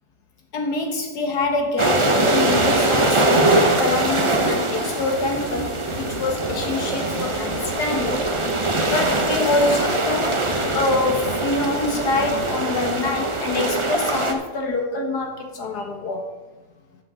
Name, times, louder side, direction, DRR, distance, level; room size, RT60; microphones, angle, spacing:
voice 1, 0.5-8.2 8.9-16.2, left 3 dB, 70° left, 3 dB, 2.0 m, -25 dB
sound 1, 1.8-14.3, right 2 dB, 25° right, 0.7 m, -22 dB
12.5 x 7.3 x 3.8 m, 1.2 s
omnidirectional pair, 1.8 m